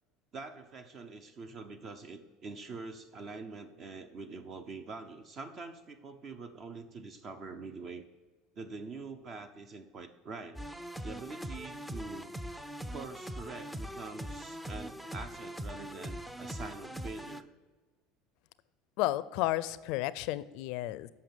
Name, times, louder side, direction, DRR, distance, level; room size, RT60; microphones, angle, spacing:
voice 1, 0.3-8.0 8.5-10.6 11.0-12.3 12.9-17.5, right 4 dB, 45° right, 8 dB, 0.8 m, -45 dB
sound 1, 10.6-17.4, equal, 5° right, 0.5 m, -41 dB
voice 2, 19.0-21.1, left 16 dB, 70° left, 17 dB, 0.4 m, -32 dB
7.7 x 5.6 x 6.9 m, 1.3 s
supercardioid pair, 95°, 0 cm